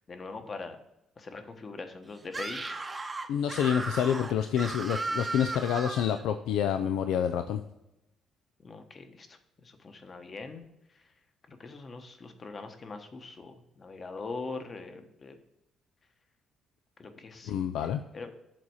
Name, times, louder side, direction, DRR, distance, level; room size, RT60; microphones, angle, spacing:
voice 1, 0.1-0.8 1.2-2.8 8.6-9.3 9.6-10.6 11.5-15.4 17.0-17.5 18.1-18.3, left 3 dB, 35° left, 7 dB, 1.1 m, -42 dB
Screaming, 2.3-6.2, right 3 dB, 20° right, 0.8 m, -36 dB
voice 2, 3.3-7.6 17.4-18.0, left 9 dB, 85° left, 8 dB, 0.4 m, -28 dB
7.4 x 4.1 x 6.4 m, 0.88 s
cardioid pair, 90°, 0 cm